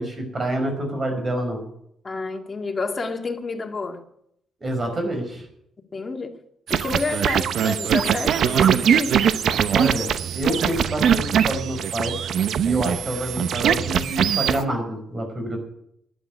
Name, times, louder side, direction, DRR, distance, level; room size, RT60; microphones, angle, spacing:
voice 1, 0.0-1.6 4.6-5.5 9.7-12.2 12.6-15.6, right 1 dB, 30° right, 5.3 m, -27 dB
voice 2, 2.0-4.0 5.9-6.3 6.7-9.1, left 3 dB, 30° left, 2.1 m, -29 dB
sound 1, 6.7-14.6, right 8 dB, 70° right, 0.8 m, -21 dB
12.0 x 9.3 x 9.5 m
cardioid pair, 80°, 0 cm